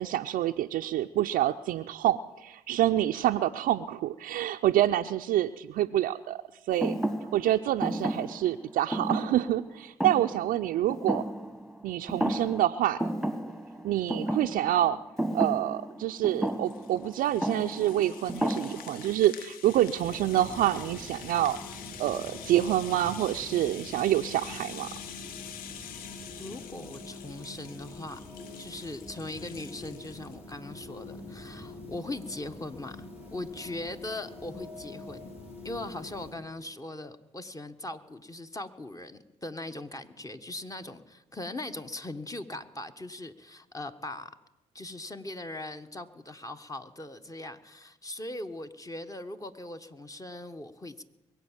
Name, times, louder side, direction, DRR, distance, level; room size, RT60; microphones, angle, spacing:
voice 1, 0.0-6.4 6.7-6.9 7.3-11.3 11.8-13.0 13.8-15.0 15.3-21.6 22.0-24.9, right 13 dB, 75° right, 4 dB, 0.5 m, -27 dB
Thump thud, 6.8-11.8 12.1-12.7 13.0-19.1, right 1 dB, ahead, 1.5 m, -33 dB
Rattle (instrument), 16.1-30.4, left 9 dB, 75° left, 0.6 m, -46 dB
sound 1, 19.9-36.3, left 2 dB, 40° left, 6.1 m, -45 dB
voice 2, 26.4-28.2 28.6-35.3 35.6-44.3 44.7-51.0, left 2 dB, 25° left, 8 dB, 1.3 m, -40 dB
22.0 x 8.3 x 7.4 m, 1.0 s
hypercardioid pair, 45°, 15 cm